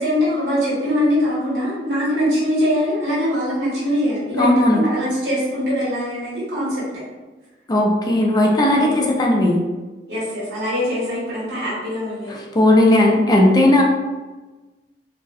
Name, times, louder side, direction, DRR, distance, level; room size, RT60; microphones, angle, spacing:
voice 1, 0.0-6.8 8.8-9.0 10.1-12.3, equal, 90° right, -8 dB, 1.3 m, -22 dB
voice 2, 4.4-4.8 7.7-9.6 12.5-13.8, left 1 dB, 25° left, 0 dB, 0.3 m, -16 dB
2.3 x 2.0 x 2.6 m, 1.2 s
head